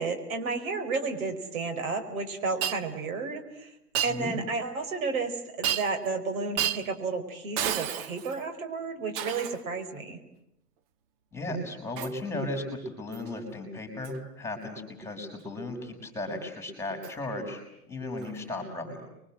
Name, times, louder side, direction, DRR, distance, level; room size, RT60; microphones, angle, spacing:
voice 1, 0.0-3.7 4.0-10.2, right 4 dB, 60° right, 6 dB, 4.9 m, -32 dB
Shatter, 2.6-2.8 4.0-4.2 5.6-6.1 6.6-6.9 7.6-8.4 9.2-9.6 12.0-12.2 13.1-13.3 14.0-14.2 17.0-17.1 18.2-18.3, right 10 dB, 35° right, 1.4 m, -31 dB
voice 2, 11.3-17.6 17.9-19.0, left 1 dB, 5° left, 4 dB, 5.8 m, -35 dB
28.5 x 23.5 x 7.7 m, 0.82 s
hypercardioid pair, 135°, 47 cm